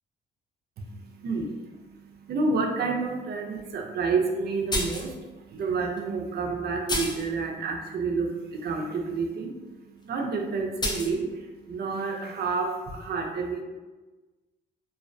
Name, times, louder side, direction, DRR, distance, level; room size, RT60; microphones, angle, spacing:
voice 1, 0.8-13.6, right 4 dB, 55° right, 2 dB, 0.4 m, -30 dB
sound 1, 4.7-5.1 6.0-6.1 6.9-7.3 10.8-11.1, left 1 dB, 20° left, 0.5 m, -29 dB
2.3 x 2.1 x 2.5 m, 1.2 s
cardioid pair, 90°, 20 cm